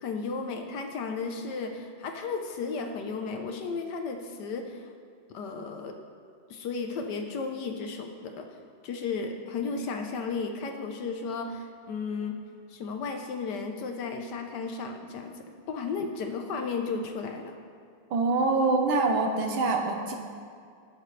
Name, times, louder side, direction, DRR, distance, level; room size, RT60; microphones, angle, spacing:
voice 1, 0.0-4.9 5.3-6.0 6.5-8.6 8.8-12.4 12.7-15.3 15.7-17.6, left 4 dB, 65° left, 4 dB, 1.2 m, -34 dB
voice 2, 18.1-20.1, right 3 dB, 80° right, 3 dB, 1.7 m, -25 dB
18.5 x 6.7 x 3.2 m, 2.2 s
omnidirectional pair, 2.2 m